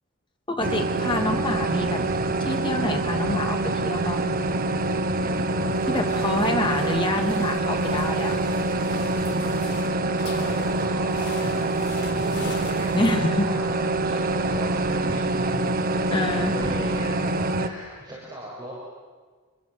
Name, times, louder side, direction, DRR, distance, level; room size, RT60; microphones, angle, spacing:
voice 1, 0.5-2.0 2.4-4.3 5.9-8.4 12.9-13.5 16.1-16.5, left 1 dB, 20° left, 3 dB, 2.8 m, -26 dB
sound 1, 0.6-17.7, right 2 dB, 40° right, 1.2 m, -25 dB
sound 2, 5.7-13.6, left 2 dB, 50° left, 4.2 m, -41 dB
voice 2, 6.0-6.7 10.2-11.7 12.0-18.8, equal, 20° right, -5 dB, 6.4 m, -38 dB
28.0 x 22.0 x 8.1 m, 1.5 s
head